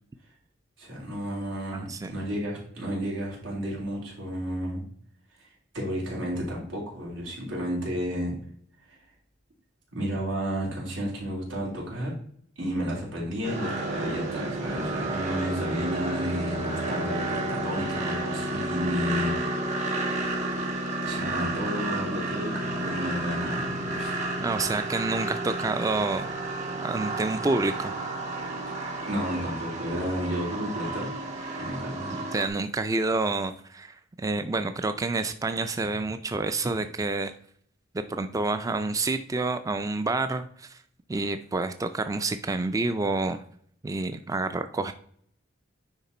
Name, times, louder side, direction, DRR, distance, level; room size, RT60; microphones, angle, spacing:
voice 1, 0.8-4.8 5.4-5.5 5.7-8.3 8.9-9.0 9.9-12.2 12.6-19.6 21.0-24.1 28.7-31.1 31.6-32.1, equal, 90° right, -3 dB, 3.5 m, -32 dB
voice 2, 1.7-2.1 24.4-26.3 26.8-27.9 32.3-37.3 38.1-40.8 41.1-43.4 43.8-44.9, right 3 dB, 15° right, 10 dB, 0.3 m, -28 dB
sound 1, 13.4-32.5, right 2 dB, 40° right, 1.5 m, -31 dB
9.8 x 3.6 x 4.2 m, 0.62 s
head